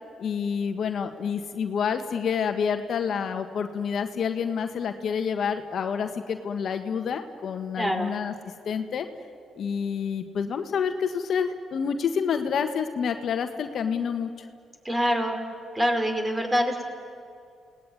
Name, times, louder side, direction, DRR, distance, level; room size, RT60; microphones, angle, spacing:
voice 1, 0.2-8.3 8.6-9.1 9.6-14.5, left 6 dB, 65° left, 7 dB, 1.5 m, -28 dB
voice 2, 7.8-8.1 14.8-15.4 15.7-16.8, equal, 15° right, 4 dB, 5.2 m, -25 dB
29.0 x 18.5 x 9.5 m, 2.3 s
supercardioid pair, 55°, 0 cm